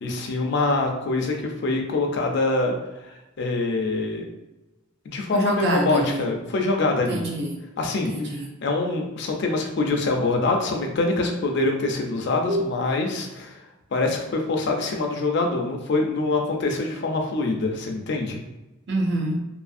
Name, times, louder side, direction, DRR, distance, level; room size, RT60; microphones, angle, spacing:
voice 1, 0.0-2.8 3.0-4.2 5.1-7.2 7.8-8.1 8.6-13.6 13.9-18.4, left 2 dB, 55° left, 2 dB, 0.4 m, -24 dB
voice 2, 5.3-6.2 7.1-7.6 8.1-8.5 12.5-12.7 18.9-19.4, right 1 dB, 55° right, 1 dB, 0.5 m, -26 dB
2.6 x 2.4 x 2.5 m, 1.0 s
head